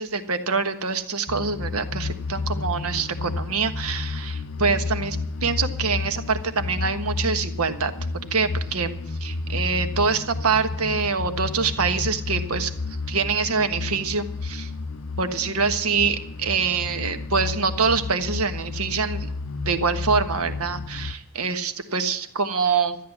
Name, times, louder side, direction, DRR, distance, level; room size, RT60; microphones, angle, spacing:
voice 1, 0.0-7.9 8.3-12.7 13.1-14.7 15.2-19.3 19.6-23.0, right 5 dB, 80° right, 9 dB, 1.4 m, -25 dB
sound 1, 1.3-21.1, left 3 dB, 70° left, 0.6 m, -31 dB
13.0 x 9.5 x 7.3 m, 0.73 s
head